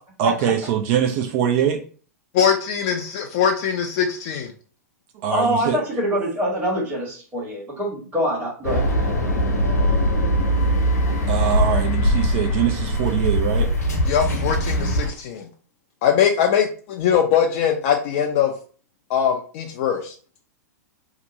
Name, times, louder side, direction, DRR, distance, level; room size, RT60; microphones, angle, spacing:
voice 1, 0.2-1.8 5.1-5.8 11.3-13.7, right 9 dB, 45° right, 4 dB, 0.5 m, -23 dB
voice 2, 2.3-4.5 14.1-15.5 16.0-18.5 19.1-20.2, left 8 dB, 45° left, 2 dB, 0.4 m, -21 dB
voice 3, 5.3-8.8, equal, 20° right, -7 dB, 1.3 m, -24 dB
sound 1, 8.6-15.1, equal, 75° left, 0.9 m, -21 dB
2.8 x 2.1 x 4.0 m, 0.41 s
figure-of-eight pair, 100°, 9 cm